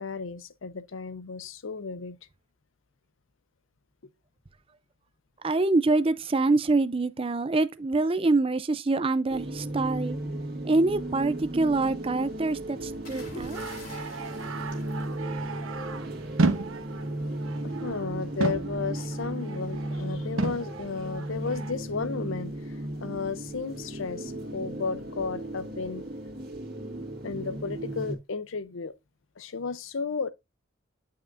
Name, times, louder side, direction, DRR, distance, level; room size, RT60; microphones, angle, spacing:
voice 1, 0.0-2.2 13.3-13.5 17.2-17.4 17.6-26.0 27.2-28.9 29.4-30.3, left 4 dB, 75° left, 0.7 m, -34 dB
voice 2, 5.4-10.2 10.6-13.6, right 3 dB, 25° right, 0.5 m, -25 dB
sound 1, 9.3-28.2, right 1 dB, 50° right, 2.1 m, -36 dB
sound 2, 13.0-15.8 17.0-17.3, left 2 dB, 45° left, 3.4 m, -47 dB
sound 3, 13.5-18.1 18.4-20.1 20.4-21.7, right 3 dB, 85° right, 1.0 m, -33 dB
9.5 x 5.7 x 2.5 m
head